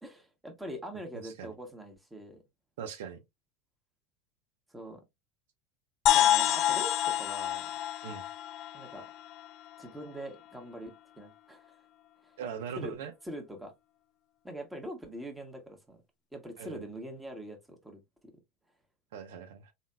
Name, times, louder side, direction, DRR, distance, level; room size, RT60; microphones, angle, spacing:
voice 1, 0.0-2.4 4.7-5.0 6.1-7.7 8.7-9.1 9.8-11.8 12.2-12.3 12.8-12.9 13.2-13.7 14.4-16.0 16.3-18.3, right 1 dB, 10° right, 1.5 m, -43 dB
voice 2, 2.8-3.2 8.0-8.3 12.4-13.1 16.6-16.8 19.1-19.7, right 7 dB, 85° right, 0.7 m, -40 dB
sound 1, 6.1-9.8, left 12 dB, 50° left, 0.4 m, -28 dB
4.0 x 3.9 x 2.2 m
supercardioid pair, 100°, 0 cm